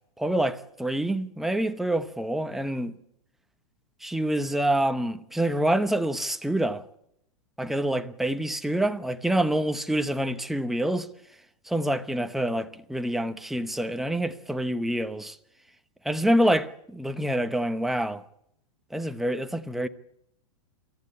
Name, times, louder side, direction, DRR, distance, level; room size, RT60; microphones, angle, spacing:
voice 1, 0.2-3.0 4.0-6.8 7.6-11.1 11.7-15.4 16.0-18.2 18.9-19.9, right 1 dB, ahead, 0.9 m, -26 dB
24.0 x 14.5 x 9.7 m
hypercardioid pair, 145°, 18 cm